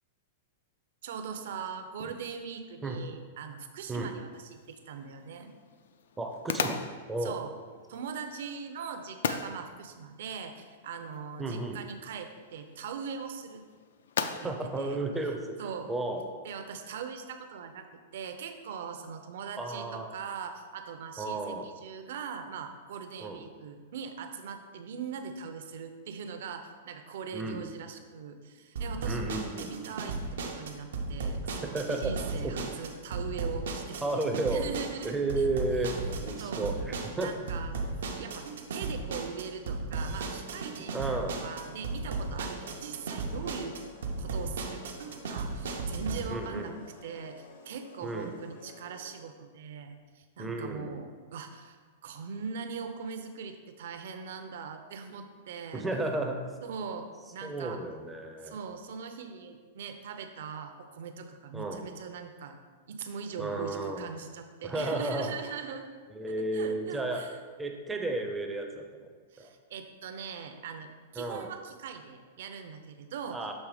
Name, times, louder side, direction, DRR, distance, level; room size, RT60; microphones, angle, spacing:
voice 1, 1.0-5.5 7.2-7.5 7.9-13.6 14.2-15.0 15.6-15.9 16.4-35.5 36.4-36.7 37.2-37.8 38.1-43.8 44.2-46.7 47.0-55.9 56.6-57.8 58.4-62.6 62.9-65.9 66.4-67.3 69.3-73.5, right 6 dB, 60° right, 7 dB, 0.6 m, -41 dB
sound 1, 4.3-16.0, left 6 dB, 85° left, 0.4 m, -40 dB
voice 2, 6.2-6.8 7.1-7.4 11.4-11.8 14.4-15.6 15.9-16.2 19.6-20.1 21.2-21.6 23.2-23.4 27.3-27.7 29.0-29.7 31.7-32.1 32.4-32.7 34.0-34.7 35.0-37.3 40.9-41.4 46.3-46.8 48.0-48.3 50.4-50.9 55.7-56.5 57.4-58.6 61.5-61.8 63.4-64.1 64.6-65.3 66.1-67.2 67.6-69.1 69.4-69.5 71.2-71.5 73.3-73.5, right 2 dB, 5° right, 3 dB, 0.4 m, -33 dB
sound 2, 28.8-46.2, right 3 dB, 90° right, 0.8 m, -35 dB
sound 3, 40.6-49.3, left 3 dB, 70° left, 0.8 m, -52 dB
6.5 x 3.3 x 4.9 m, 1.5 s
supercardioid pair, 170°, 0 cm